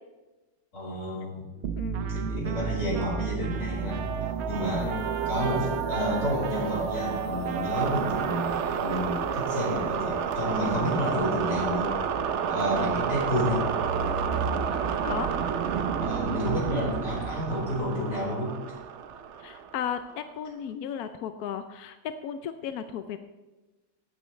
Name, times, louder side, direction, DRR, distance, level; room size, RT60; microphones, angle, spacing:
voice 1, 0.7-1.4 2.0-4.0 4.5-5.0 5.2-11.9 12.5-13.7 16.0-18.5, equal, 40° left, -5 dB, 5.1 m, -30 dB
sound 1, 1.6-20.1, right 6 dB, 90° right, 0.6 m, -30 dB
voice 2, 1.8-2.1 4.8-5.1 12.8-12.9 15.0-15.3 19.4-22.0 22.2-23.2, left 8 dB, 70° left, 9 dB, 0.9 m, -35 dB
Trumpet, 1.9-9.9, right 7 dB, 60° right, 1.0 m, -42 dB
17.0 x 8.9 x 3.2 m, 1.1 s
omnidirectional pair, 2.0 m